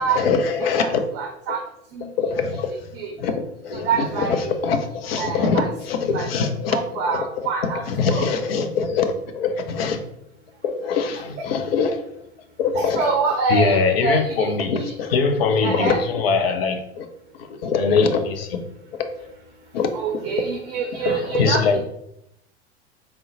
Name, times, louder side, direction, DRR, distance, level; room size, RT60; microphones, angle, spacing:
voice 1, 0.0-1.0 1.5-1.6 2.0-2.7 3.2-7.5 7.8-10.0 10.6-12.0 12.6-13.2 13.5-17.1 17.5-18.6 18.9-19.1 19.7-19.9 20.2-20.3 20.9-21.8, left 5 dB, 60° left, 0.6 m, -23 dB
voice 2, 0.6-1.6 1.9-2.1 2.9-3.1 3.7-4.5 5.2-5.7 6.1-7.8 8.1-8.2 12.8-14.8 15.6-16.0 19.9-21.8, right 5 dB, 35° right, 0.5 m, -26 dB
3.7 x 2.1 x 3.9 m
figure-of-eight pair, 85°, 34 cm